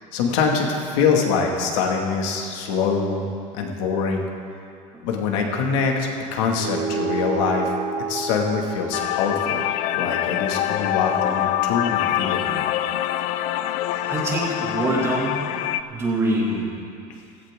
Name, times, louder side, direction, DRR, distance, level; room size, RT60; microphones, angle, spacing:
voice 1, 0.1-3.3 3.5-4.3 5.0-7.7 8.1-9.6 10.0-12.6, left 5 dB, 80° left, 1 dB, 2.1 m, -24 dB
sound 1, 6.6-11.4, right 4 dB, 45° right, 0.8 m, -31 dB
sound 2, 8.9-15.8, left 13 dB, 50° left, 0.4 m, -25 dB
voice 2, 14.1-15.4 15.9-16.7, right 1 dB, 15° right, -4 dB, 2.5 m, -24 dB
16.0 x 15.0 x 3.7 m, 2.4 s
cardioid pair, 170°, 16 cm